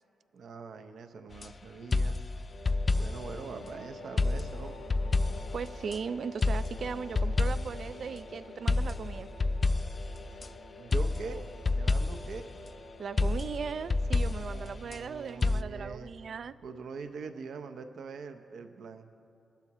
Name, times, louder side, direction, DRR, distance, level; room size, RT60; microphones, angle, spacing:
voice 1, 0.3-2.2 3.0-4.8 10.8-11.4 11.7-12.5 14.4-16.1 16.6-19.1, right 5 dB, 75° right, 7 dB, 0.7 m, -43 dB
sound 1, 1.3-1.5 1.9-3.4 4.2-6.0 6.4-7.9 8.7-10.5 10.9-12.4 13.2-15.0 15.4-15.6, left 3 dB, 35° left, 0.3 m, -29 dB
sound 2, 2.5-14.7, left 2 dB, 85° left, 1.2 m, -48 dB
voice 2, 5.5-9.3 13.0-16.5, right 6 dB, 60° right, 15 dB, 0.3 m, -38 dB
20.5 x 11.5 x 3.0 m, 2.6 s
cardioid pair, 95°, 0 cm